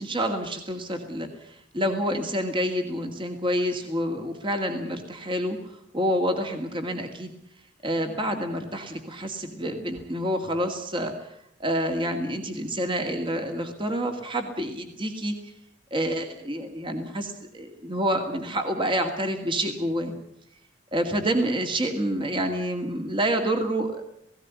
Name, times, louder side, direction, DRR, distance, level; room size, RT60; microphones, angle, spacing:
voice 1, 0.0-5.6 5.9-7.3 7.8-15.4 15.9-20.1 20.9-24.0, equal, 30° right, 5 dB, 2.3 m, -28 dB
18.5 x 17.0 x 9.5 m, 0.75 s
head